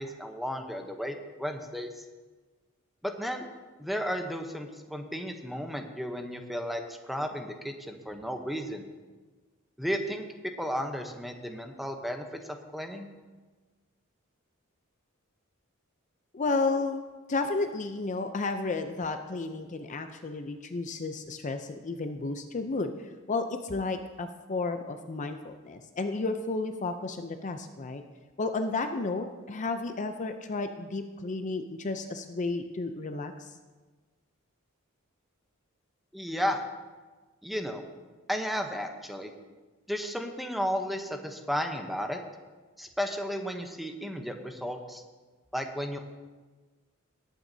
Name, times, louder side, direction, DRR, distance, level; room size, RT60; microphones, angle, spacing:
voice 1, 0.0-2.0 3.0-3.5 3.8-8.8 9.8-10.3 10.6-13.1 36.1-36.6 37.4-37.9 38.3-39.3 39.9-42.2 42.8-45.0 45.5-46.0, equal, ahead, 4 dB, 0.8 m, -33 dB
voice 2, 16.3-17.0 17.3-28.0 28.4-33.5, left 3 dB, 35° left, 7 dB, 0.5 m, -32 dB
19.0 x 9.0 x 2.7 m, 1.3 s
head